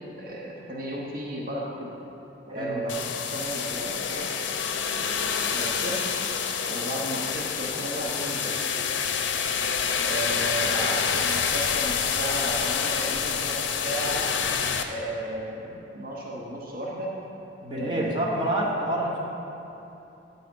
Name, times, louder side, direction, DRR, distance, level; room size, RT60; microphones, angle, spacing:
voice 1, 0.2-1.9 2.5-4.3 5.5-6.0 6.7-8.6 10.0-14.3 14.9-17.1 17.7-18.5, right 1 dB, 50° right, -4 dB, 0.8 m, -34 dB
voice 2, 2.6-2.9 17.6-19.2, right 1 dB, 25° right, -4 dB, 1.0 m, -27 dB
sound 1, 2.9-14.8, left 6 dB, 80° left, 0.5 m, -27 dB
9.2 x 4.1 x 5.2 m, 3.0 s
head